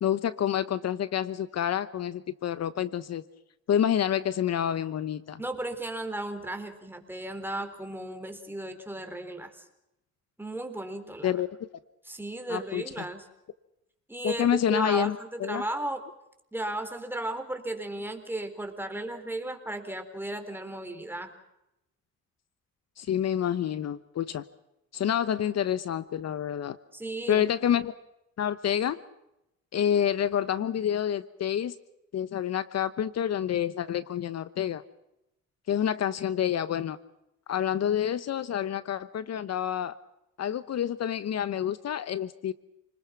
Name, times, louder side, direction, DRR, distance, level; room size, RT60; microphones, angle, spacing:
voice 1, 0.0-3.2 3.7-5.4 11.2-11.5 12.5-12.8 14.2-15.6 23.0-24.4 24.9-26.8 27.3-27.9 28.4-29.0 29.7-31.7 32.1-34.8 35.7-37.0 37.5-40.0 40.4-42.5, left 9 dB, 60° left, 15 dB, 1.0 m, -28 dB
voice 2, 5.4-9.7 10.4-11.4 12.0-13.3 14.1-16.0 16.5-21.3 26.9-27.5, right 1 dB, 5° right, 6 dB, 4.1 m, -35 dB
29.0 x 20.5 x 5.9 m, 0.87 s
cardioid pair, 90°, 30 cm